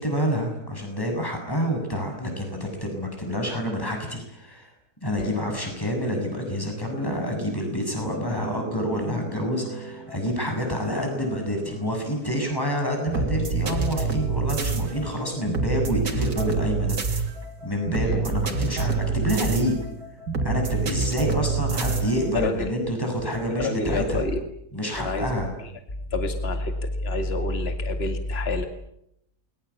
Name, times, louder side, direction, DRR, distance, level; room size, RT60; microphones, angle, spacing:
voice 1, 0.0-4.7 5.0-17.2 17.6-19.8 20.4-24.2 24.7-25.5, equal, 15° left, 3 dB, 7.5 m, -28 dB
sound 1, 8.0-22.3, right 4 dB, 75° right, 3.4 m, -28 dB
voice 2, 22.3-22.7 23.5-24.4 25.0-25.4 26.1-28.6, left 2 dB, 40° left, 6 dB, 2.5 m, -27 dB
29.0 x 23.5 x 8.6 m, 0.78 s
omnidirectional pair, 1.7 m